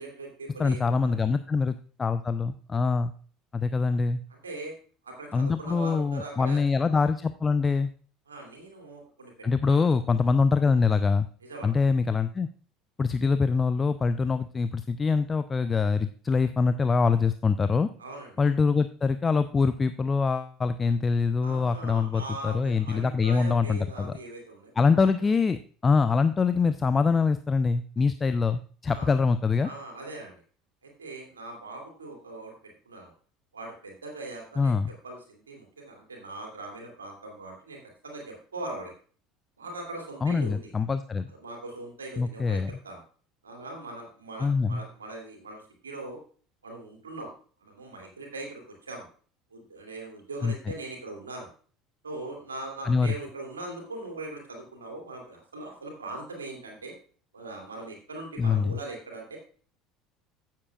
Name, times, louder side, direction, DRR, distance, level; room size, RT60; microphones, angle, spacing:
voice 1, 0.0-1.1 4.3-4.7 5.0-6.6 8.3-9.3 9.6-9.9 11.4-11.7 18.0-18.3 21.4-24.7 28.9-29.1 29.6-30.4 30.8-32.5 32.9-33.1 33.5-34.8 35.0-37.8 38.0-38.9 39.6-40.7 41.3-43.0 43.4-46.2 46.6-47.3 47.6-49.1 49.5-51.5 52.0-56.9 57.3-59.4, right 2 dB, 80° right, 1 dB, 2.6 m, -40 dB
voice 2, 0.6-3.1 3.5-4.2 5.3-7.9 9.4-11.3 11.6-12.5 13.0-17.9 18.4-24.2 24.8-29.7 34.6-34.9 40.2-41.3 42.2-42.7 44.4-44.8 50.4-50.5 52.8-53.1 58.4-58.7, left 4 dB, 25° left, 11 dB, 0.5 m, -24 dB
15.0 x 7.4 x 2.4 m, 0.42 s
figure-of-eight pair, 65°, 0 cm